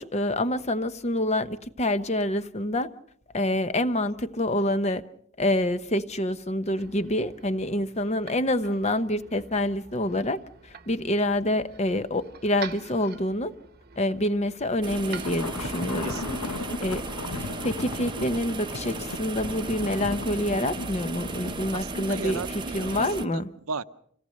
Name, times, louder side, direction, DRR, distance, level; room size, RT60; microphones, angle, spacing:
voice 1, 0.0-2.9 3.3-5.0 5.4-13.5 14.0-16.2 16.8-17.1 17.4-23.5, left 1 dB, 30° left, 0.9 m, -27 dB
sound 1, 6.5-17.1, right 5 dB, 45° right, 1.0 m, -47 dB
sound 2, 14.8-23.2, right 2 dB, 20° right, 0.9 m, -36 dB
sound 3, 15.2-21.7, left 3 dB, 90° left, 1.1 m, -36 dB
voice 2, 16.0-16.7 21.7-23.4 23.7-23.8, right 4 dB, 70° right, 0.8 m, -36 dB
27.0 x 17.5 x 6.5 m
head